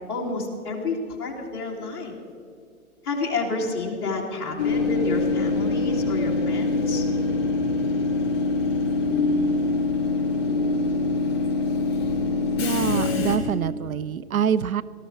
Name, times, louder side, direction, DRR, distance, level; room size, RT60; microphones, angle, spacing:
voice 1, 0.1-2.2 3.0-7.0, left 3 dB, 10° left, -5 dB, 2.1 m, -29 dB
Train / Subway metro underground, 4.6-13.4, left 3 dB, 40° left, 4.6 m, -24 dB
voice 2, 12.6-14.8, right 8 dB, 70° right, 18 dB, 0.6 m, -25 dB
18.5 x 14.0 x 4.4 m, 2.4 s
hypercardioid pair, 165°, 44 cm